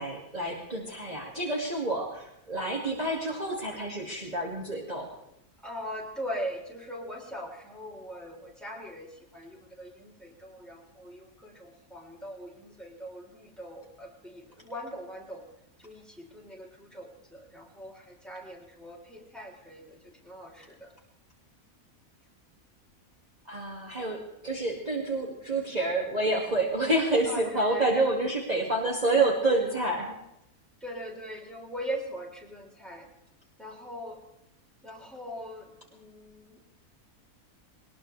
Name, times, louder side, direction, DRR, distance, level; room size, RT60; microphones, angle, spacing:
voice 1, 0.0-5.1 23.5-30.1, right 2 dB, 30° right, -3 dB, 2.2 m, -28 dB
voice 2, 5.6-15.5 15.8-20.9 27.3-28.0 30.8-33.1 33.6-34.2 34.8-36.6, equal, ahead, -1 dB, 3.7 m, -41 dB
21.0 x 20.0 x 3.3 m, 0.86 s
omnidirectional pair, 1.5 m